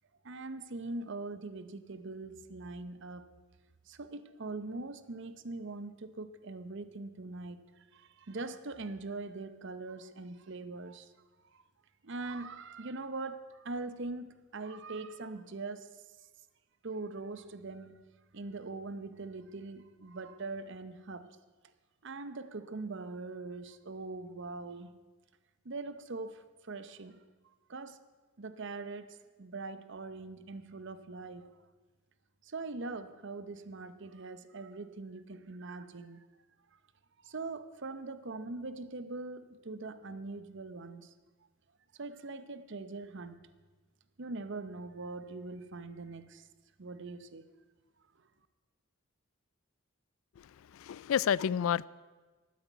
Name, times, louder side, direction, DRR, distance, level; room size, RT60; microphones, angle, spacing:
voice 1, 0.2-3.3 3.9-11.1 11.5-11.6 12.0-16.0 16.8-18.1 18.3-21.4 22.0-25.0 25.6-27.2 27.7-28.0 28.4-31.5 32.4-36.3 37.2-41.1 41.9-43.5 44.2-46.5 46.8-47.4, right 3 dB, 55° right, 0.8 m, -42 dB
voice 2, 50.4-51.9, left 8 dB, 70° left, 0.3 m, -30 dB
13.0 x 9.4 x 8.0 m
head